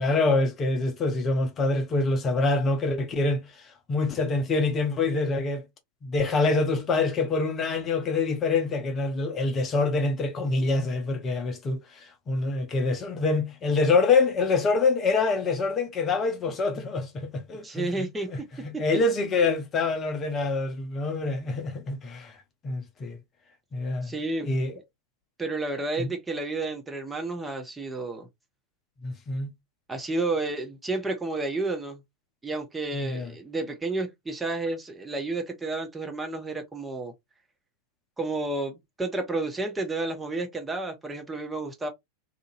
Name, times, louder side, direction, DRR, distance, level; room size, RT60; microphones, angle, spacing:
voice 1, 0.0-5.6 6.0-18.4 18.8-22.3 22.6-23.2 23.7-24.1 24.4-24.7 26.0-26.1 29.0-29.5 32.9-33.3, left 3 dB, 25° left, 0.7 m, -26 dB
voice 2, 17.6-18.5 18.7-18.8 24.0-24.5 25.4-28.3 29.9-32.0 32.4-37.1 38.2-41.9, right 2 dB, 10° right, 0.7 m, -31 dB
2.8 x 2.5 x 2.5 m
figure-of-eight pair, 90°, 0 cm